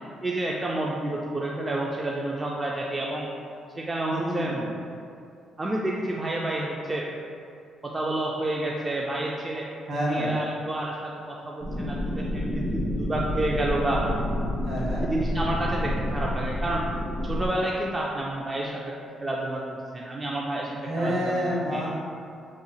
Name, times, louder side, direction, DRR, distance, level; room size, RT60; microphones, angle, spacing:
voice 1, 0.2-3.3 3.8-4.5 5.6-7.1 7.8-9.7 10.1-14.0 15.0-16.8 17.2-18.8 19.2-21.3 21.7-21.8, right 1 dB, 25° right, -3 dB, 0.3 m, -29 dB
voice 2, 4.1-4.7 9.9-10.4 14.6-15.1 20.8-21.9, equal, 60° right, -7 dB, 1.4 m, -28 dB
sound 1, 11.6-17.5, left 1 dB, 80° right, 1.1 m, -29 dB
2.9 x 2.3 x 3.9 m, 2.5 s
cardioid pair, 90°, 0 cm